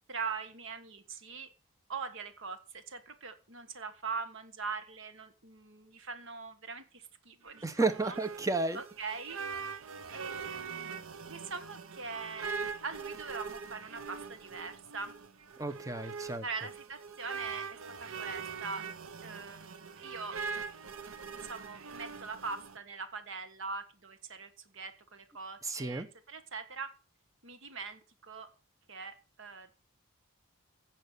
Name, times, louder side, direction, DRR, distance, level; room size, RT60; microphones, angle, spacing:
voice 1, 0.1-1.5 1.9-8.2 8.7-9.4 10.1-10.9 11.3-15.1 16.4-18.9 19.2-20.4 21.3-26.9 27.4-28.5 28.9-29.7, right 4 dB, 60° right, 10 dB, 1.5 m, -42 dB
sound 1, 7.5-22.8, right 5 dB, 80° right, 1.0 m, -42 dB
voice 2, 7.6-8.8 15.6-16.4 25.6-26.1, right 3 dB, 15° right, 11 dB, 1.0 m, -32 dB
16.0 x 5.8 x 6.8 m, 0.35 s
head